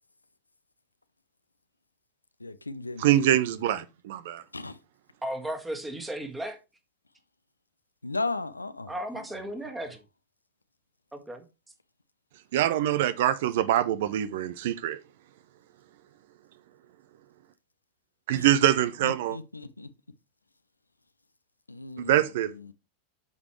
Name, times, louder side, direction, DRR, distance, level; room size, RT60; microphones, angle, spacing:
voice 1, 2.4-3.4 4.5-4.8 8.0-8.9 18.3-18.5 19.0-19.9 21.7-22.2, left 3 dB, 80° left, 0.6 m, -35 dB
voice 2, 3.0-4.4 12.5-15.0 18.3-19.4 22.0-22.5, right 12 dB, 55° right, 0.6 m, -24 dB
voice 3, 5.2-6.6 8.9-10.0 11.1-11.4, right 1 dB, 10° right, 1.8 m, -35 dB
8.3 x 6.9 x 3.1 m
figure-of-eight pair, 90°, 0 cm